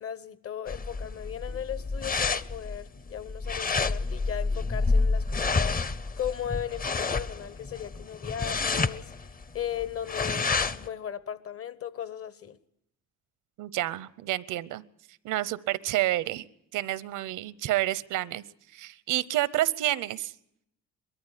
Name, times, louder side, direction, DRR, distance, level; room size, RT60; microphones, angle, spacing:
voice 1, 0.0-9.3 9.5-12.6, left 9 dB, 50° left, 1.2 m, -37 dB
sound 1, 0.7-10.9, left 4 dB, 30° left, 0.8 m, -29 dB
voice 2, 13.6-14.8 15.2-16.5 16.7-18.4 18.7-20.3, right 15 dB, 90° right, 0.8 m, -29 dB
21.5 x 14.0 x 10.0 m
cardioid pair, 90°, 30 cm